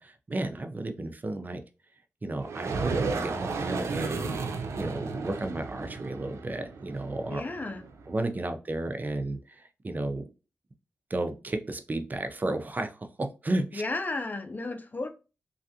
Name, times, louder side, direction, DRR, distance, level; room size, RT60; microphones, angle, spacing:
voice 1, 0.0-1.6 2.2-7.4 8.1-9.4 9.8-10.3 11.1-13.8, right 2 dB, 40° right, 0.6 m, -33 dB
sound 1, 2.4-8.1, right 4 dB, 90° right, 0.4 m, -33 dB
voice 2, 7.3-7.9 13.7-15.1, left 2 dB, 40° left, 0.6 m, -33 dB
3.3 x 2.4 x 2.7 m
cardioid pair, 55°, 5 cm